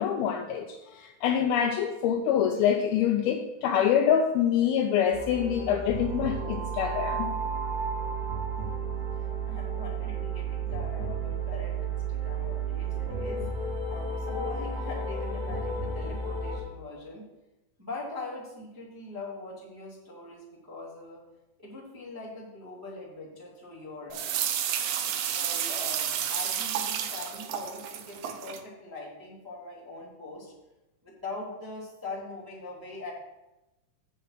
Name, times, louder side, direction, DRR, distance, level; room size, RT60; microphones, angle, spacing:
voice 1, 0.0-7.3, left 8 dB, 85° left, 4 dB, 2.2 m, -25 dB
sound 1, 5.1-16.6, right 4 dB, 65° right, 4.5 m, -32 dB
voice 2, 9.2-17.2 17.8-21.2 21.6-24.5 25.0-30.5 31.0-33.1, left 2 dB, 5° right, -8 dB, 2.1 m, -42 dB
sound 2, 24.1-28.6, right 9 dB, 80° right, 2.0 m, -31 dB
7.6 x 6.8 x 5.9 m, 0.99 s
omnidirectional pair, 4.9 m